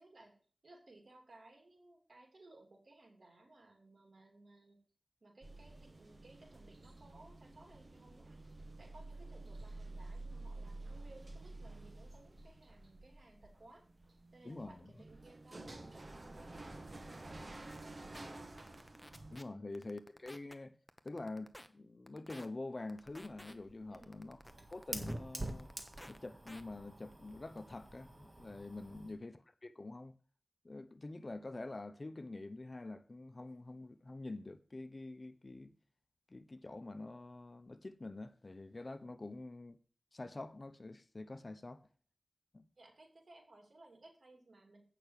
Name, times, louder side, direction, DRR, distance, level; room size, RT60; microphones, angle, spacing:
voice 1, 0.0-4.8 5.2-8.4 8.8-13.9 14.3-18.5 19.5-19.7 23.9-24.3 28.9-29.1 42.8-44.8, right 2 dB, 80° right, 2.7 m, -61 dB
sound 1, 5.4-19.4, right 2 dB, 55° right, 1.5 m, -50 dB
voice 2, 14.4-14.8 19.3-20.8 21.0-24.4 24.7-25.7 26.1-30.1 30.6-35.7 36.3-39.8 40.1-41.9 42.5-42.7, left 2 dB, 55° left, 0.8 m, -46 dB
sound 2, 17.7-17.8 18.1-18.2 18.6-19.4 19.7-20.5 20.9-21.7 22.1-22.5 22.9-23.5 23.9-25.1 25.5-26.2 26.5-26.6, equal, 10° left, 0.9 m, -53 dB
Fire, 23.0-29.2, right 1 dB, 35° right, 1.7 m, -47 dB
8.7 x 5.9 x 6.5 m
wide cardioid pair, 45°, 0 cm